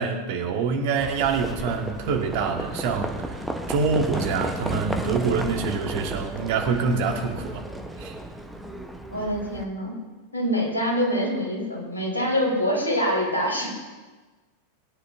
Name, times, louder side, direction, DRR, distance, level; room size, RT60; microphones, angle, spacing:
voice 1, 0.0-3.3 3.7-7.6 8.0-8.1, right 5 dB, 50° right, 3 dB, 1.6 m, -25 dB
Livestock farm animals working animals, 1.0-9.6, right 1 dB, 5° right, 1.0 m, -33 dB
voice 2, 9.1-9.9 10.3-13.7, equal, 80° left, -3 dB, 4.2 m, -25 dB
20.5 x 9.9 x 2.7 m, 1.3 s
figure-of-eight pair, 90°, 0 cm